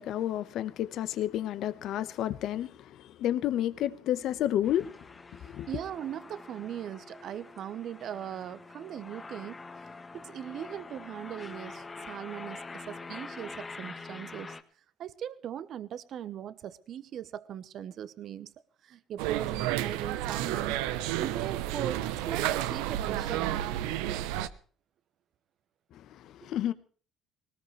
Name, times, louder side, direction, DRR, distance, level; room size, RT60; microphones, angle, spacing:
voice 1, 0.0-5.1 5.4-5.7 25.9-26.7, left 12 dB, 70° left, 1.1 m, -31 dB
sound 1, 4.6-14.6, left 3 dB, 25° left, 1.5 m, -45 dB
voice 2, 5.7-9.6 10.1-14.6 15.0-18.5 18.8-20.8 21.2-23.6 26.4-26.5, right 10 dB, 60° right, 1.0 m, -39 dB
sound 2, 19.2-24.5, right 13 dB, 90° right, 0.8 m, -31 dB
19.5 x 18.5 x 3.3 m
supercardioid pair, 85°, 0 cm